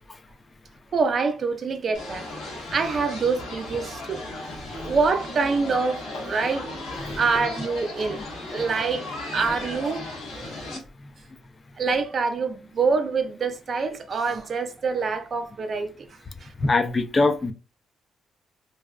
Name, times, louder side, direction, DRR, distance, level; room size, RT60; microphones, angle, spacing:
voice 1, 0.9-2.3 2.7-4.2 4.8-6.7 7.2-8.2 8.5-9.1 9.3-10.0 11.8-16.1 16.4-16.5, right 4 dB, 50° right, 0.4 m, -25 dB
sound 1, 1.9-10.8, left 2 dB, 85° left, 0.8 m, -36 dB
voice 2, 16.6-17.5, left 3 dB, 30° left, 0.3 m, -22 dB
2.6 x 2.0 x 2.3 m
cardioid pair, 90°, 0 cm